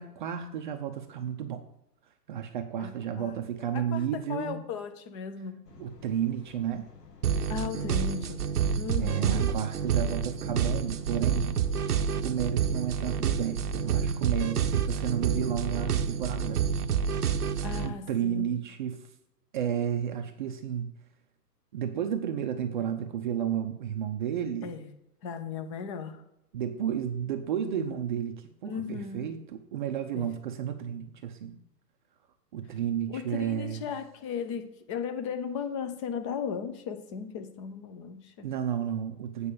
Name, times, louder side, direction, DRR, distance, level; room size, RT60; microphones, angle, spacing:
voice 1, 0.0-1.6 2.3-4.6 5.8-6.9 9.0-11.6 12.2-16.6 17.8-19.0 19.5-20.9 21.7-24.8 26.5-31.6 32.5-33.9 38.4-39.5, right 9 dB, 30° right, 5 dB, 0.6 m, -32 dB
voice 2, 2.8-3.4 3.7-5.7 7.5-8.4 8.7-9.5 17.6-18.6 24.6-24.9 25.2-26.2 28.6-29.3 30.2-30.3 33.1-38.5, left 6 dB, 20° left, 7 dB, 0.6 m, -36 dB
sound 1, 5.6-12.1, left 5 dB, 75° left, 1.6 m, -52 dB
sound 2, 7.2-17.9, right 7 dB, 65° right, 0.8 m, -28 dB
8.5 x 4.4 x 6.9 m, 0.85 s
figure-of-eight pair, 125°, 48 cm